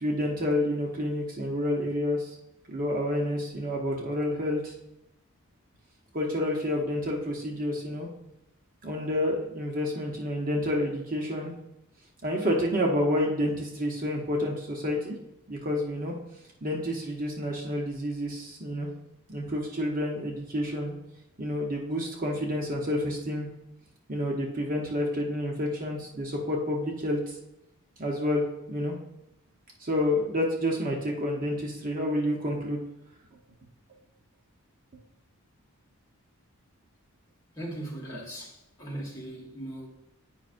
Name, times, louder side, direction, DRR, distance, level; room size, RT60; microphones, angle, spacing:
voice 1, 0.0-2.3 2.7-4.7 6.1-8.1 8.8-11.5 12.2-15.2 15.5-16.1 16.6-18.9 19.3-20.9 21.4-23.5 24.1-27.3 28.0-28.4 28.7-28.9 29.8-32.8, left 1 dB, 40° right, -1 dB, 0.8 m, -29 dB
voice 2, 37.5-39.9, right 1 dB, 15° left, -4 dB, 1.4 m, -39 dB
8.8 x 5.2 x 2.5 m, 0.87 s
head